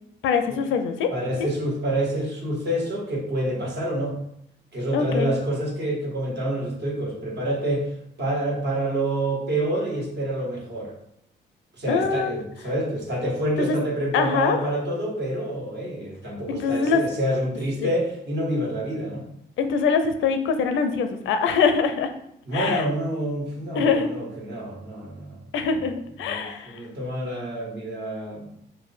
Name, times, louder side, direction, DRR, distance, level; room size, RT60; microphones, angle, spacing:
voice 1, 0.2-1.1 4.9-5.3 11.9-12.4 13.6-13.8 14.1-14.6 16.5-17.0 17.8-17.9 19.6-22.1 22.5-22.9 23.7-24.1 25.5-26.8, left 5 dB, 80° left, 7 dB, 0.5 m, -23 dB
voice 2, 1.1-4.2 4.7-7.9 8.2-11.0 11.8-19.2 22.5-25.4 25.7-25.8 26.2-28.5, right 1 dB, 60° right, -2 dB, 1.5 m, -27 dB
4.8 x 2.2 x 4.3 m, 0.76 s
cardioid pair, 90°, 20 cm